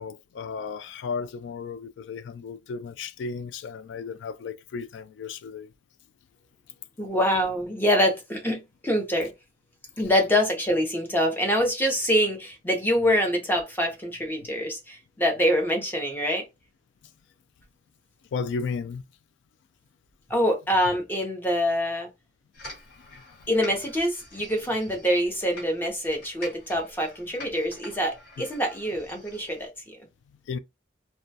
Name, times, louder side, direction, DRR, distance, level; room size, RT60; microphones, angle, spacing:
voice 1, 0.0-5.7 18.3-19.0 23.1-23.4 30.5-30.6, left 5 dB, 80° left, 0.3 m, -34 dB
voice 2, 7.0-9.3 10.0-16.4 20.3-22.1 23.5-30.0, equal, 10° left, 0.6 m, -25 dB
sound 1, 22.5-29.7, left 2 dB, 60° left, 1.5 m, -46 dB
2.2 x 2.2 x 2.6 m
head